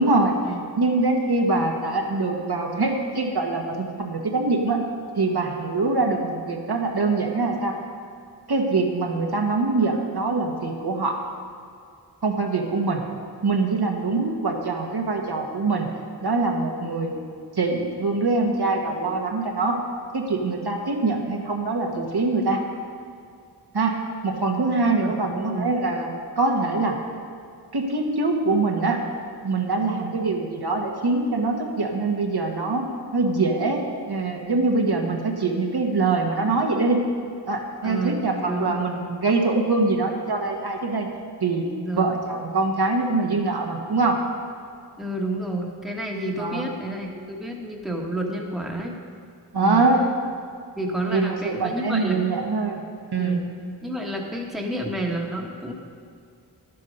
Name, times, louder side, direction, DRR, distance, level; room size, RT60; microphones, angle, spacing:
voice 1, 0.0-0.3 0.8-4.8 5.2-7.7 8.5-11.2 12.2-13.0 13.4-15.9 16.2-17.2 17.5-19.8 20.1-22.6 23.7-24.0 24.2-26.1 26.4-27.0 27.7-29.0 29.4-32.9 33.1-37.0 37.5-41.1 41.4-41.7 42.0-44.2 46.4-46.6 49.5-50.0 51.1-52.8 53.1-53.4, right 3 dB, 70° right, 1 dB, 1.3 m, -23 dB
voice 2, 25.0-25.7 37.8-38.8 41.7-42.2 45.0-49.0 49.6-49.9 50.7-52.2 53.2-53.5 53.8-55.7, right 1 dB, ahead, 0 dB, 1.3 m, -29 dB
11.0 x 8.4 x 5.3 m, 2.3 s
wide cardioid pair, 70°, 41 cm